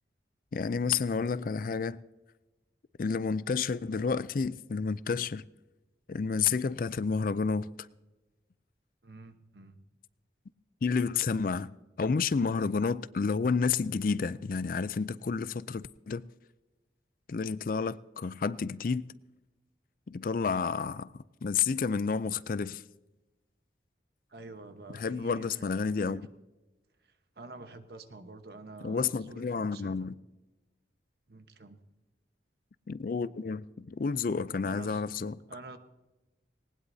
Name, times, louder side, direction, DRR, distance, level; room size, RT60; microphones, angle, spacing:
voice 1, 0.5-2.0 3.0-5.4 6.1-7.7 10.8-11.7 12.0-16.2 17.3-19.1 20.1-22.8 24.9-26.2 28.8-30.1 32.9-35.4, left 5 dB, 50° left, 0.4 m, -30 dB
voice 2, 9.0-9.8 24.3-26.3 27.0-30.1 31.3-31.8 34.6-35.0 35.5-35.8, right 2 dB, 60° right, 1.1 m, -48 dB
19.5 x 19.0 x 2.7 m
head